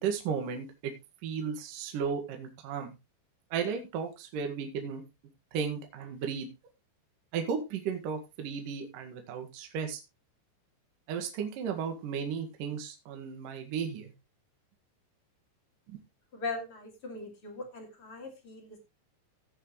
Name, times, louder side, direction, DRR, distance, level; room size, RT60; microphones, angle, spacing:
voice 1, 0.0-0.9 1.2-2.9 3.5-5.0 5.5-6.5 7.3-10.0 11.1-14.1 15.9-16.0, right 6 dB, 55° right, 4 dB, 3.0 m, -34 dB
voice 2, 16.3-18.8, left 3 dB, 35° left, 3 dB, 2.8 m, -40 dB
17.5 x 6.5 x 3.1 m, 0.25 s
omnidirectional pair, 5.3 m